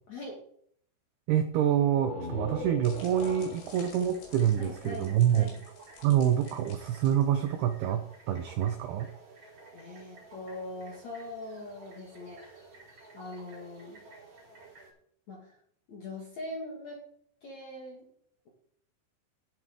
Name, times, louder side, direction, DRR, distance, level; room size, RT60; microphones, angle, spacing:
voice 1, 0.1-0.4 4.6-5.6 9.7-12.7 13.1-14.0 15.3-15.6 15.9-17.0 17.4-18.1, left 2 dB, 50° left, -2 dB, 2.3 m, -42 dB
voice 2, 1.3-5.5 6.0-9.1, right 10 dB, 85° right, 8 dB, 2.3 m, -26 dB
sound 1, 1.9-5.5, left 2 dB, 20° left, 3.5 m, -41 dB
sound 2, 2.3-7.7, left 4 dB, 80° left, 5.9 m, -54 dB
sound 3, 3.5-14.9, right 3 dB, 30° right, 4.5 m, -53 dB
16.0 x 8.2 x 3.6 m, 0.65 s
omnidirectional pair, 5.5 m